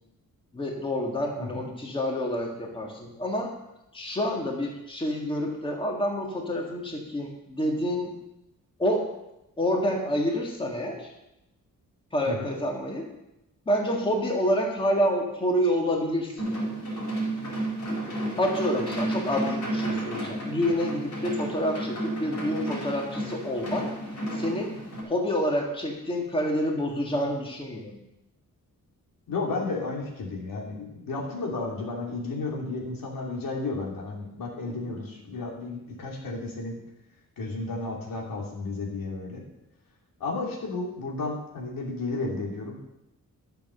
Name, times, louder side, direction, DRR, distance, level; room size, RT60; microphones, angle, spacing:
voice 1, 0.5-3.5 3.9-8.2 8.8-9.1 9.6-11.1 12.1-13.1 13.7-16.5 18.4-23.9 24.3-24.8 25.1-28.0 34.7-35.0, equal, 15° left, 0 dB, 1.7 m, -28 dB
sound 1, 16.4-25.0, right 1 dB, 55° left, 4.5 m, -32 dB
voice 2, 29.3-36.8 37.4-39.4 40.2-42.8, left 3 dB, 90° left, -2 dB, 3.0 m, -33 dB
11.5 x 6.8 x 6.7 m, 0.89 s
wide cardioid pair, 165°, 33 cm